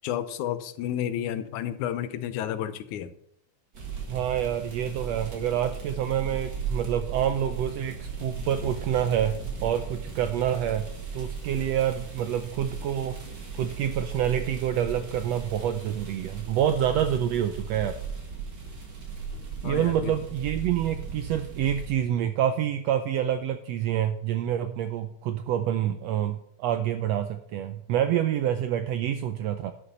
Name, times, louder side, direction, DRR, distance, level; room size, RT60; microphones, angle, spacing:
voice 1, 0.0-3.1 19.6-20.1, left 10 dB, 80° left, 11 dB, 2.2 m, -31 dB
Hard Rain in Moving Car, 3.7-21.9, right 5 dB, 35° right, 2.5 m, -37 dB
voice 2, 4.1-10.9 11.1-13.2 13.6-18.0 19.6-29.7, right 10 dB, 80° right, 8 dB, 1.5 m, -27 dB
11.5 x 6.8 x 5.4 m, 0.69 s
omnidirectional pair, 3.5 m